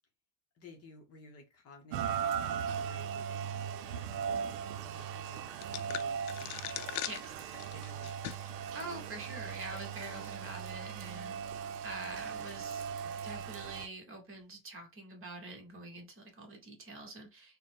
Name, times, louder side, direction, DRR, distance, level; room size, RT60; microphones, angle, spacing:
voice 1, 0.5-4.5 4.8-7.2 7.7-8.1, left 3 dB, 30° left, 0.7 m, -55 dB
Rain, 1.9-13.9, right 7 dB, 85° right, 0.6 m, -38 dB
sound 1, 5.6-8.6 9.0-9.1 9.9-10.3, left 13 dB, 80° left, 0.6 m, -41 dB
voice 2, 7.1-7.5 8.7-11.5 11.8-12.8 13.2-17.6, right 2 dB, 25° right, 1.2 m, -45 dB
3.9 x 2.2 x 3.7 m
supercardioid pair, 135°, 49 cm